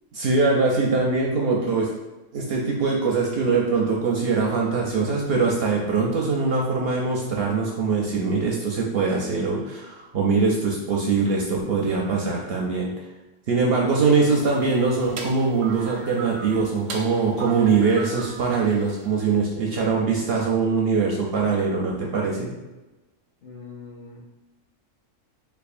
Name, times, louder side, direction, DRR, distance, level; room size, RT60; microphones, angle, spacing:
voice 1, 0.1-1.9 2.3-12.9 13.5-22.5, right 4 dB, 65° right, -1 dB, 0.6 m, -22 dB
sound 1, 14.0-19.3, right 4 dB, 90° right, 1.0 m, -39 dB
voice 2, 23.4-24.4, left 4 dB, 50° left, -5 dB, 0.6 m, -42 dB
3.6 x 3.3 x 2.4 m, 1.1 s
omnidirectional pair, 1.3 m